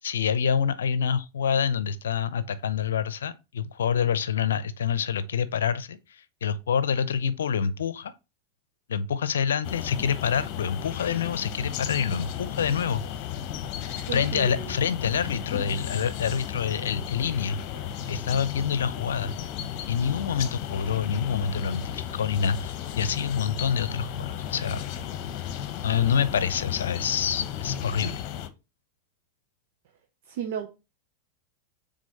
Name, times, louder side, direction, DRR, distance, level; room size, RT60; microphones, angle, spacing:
voice 1, 0.0-8.1 8.9-13.0 14.1-17.6 18.1-19.4 19.9-24.8 25.8-28.2, left 7 dB, 75° left, 0.7 m, -27 dB
sound 1, 9.6-28.5, left 10 dB, 45° left, 1.0 m, -34 dB
voice 2, 14.1-15.1 30.3-30.7, right 9 dB, 60° right, 1.1 m, -35 dB
6.2 x 4.0 x 4.0 m
figure-of-eight pair, 90°, 0 cm